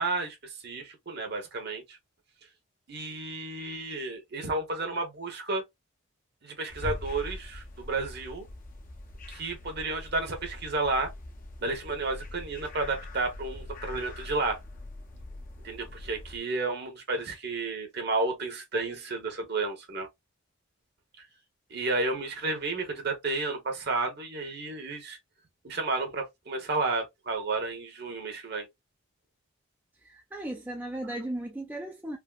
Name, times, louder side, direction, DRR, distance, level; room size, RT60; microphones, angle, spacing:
voice 1, 0.0-2.0 2.9-5.6 6.4-8.5 9.3-11.1 11.6-14.6 15.6-20.1 21.7-25.2 25.6-28.7, right 3 dB, 50° right, 0.9 m, -32 dB
sound 1, 6.7-16.4, left 1 dB, 40° left, 0.6 m, -42 dB
voice 2, 30.0-32.2, right 1 dB, 10° right, 0.3 m, -36 dB
3.4 x 2.0 x 2.3 m
head